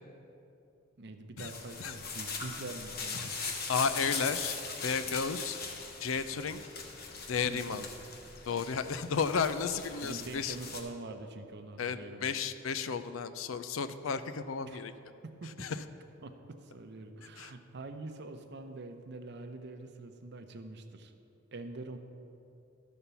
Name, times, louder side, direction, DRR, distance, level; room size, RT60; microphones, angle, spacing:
voice 1, 1.0-3.4 7.4-7.9 10.0-12.4 14.6-14.8 15.2-15.7 16.2-21.1 21.5-22.0, right 2 dB, 60° right, 7 dB, 0.7 m, -45 dB
sound 1, 1.4-10.8, left 4 dB, 50° left, 1.0 m, -40 dB
voice 2, 3.7-5.6 6.0-6.6 7.3-7.8 8.5-10.6 11.8-14.9 15.6-15.8 17.4-17.5, left 5 dB, 90° left, 12 dB, 0.5 m, -33 dB
12.5 x 4.3 x 6.9 m, 2.7 s
head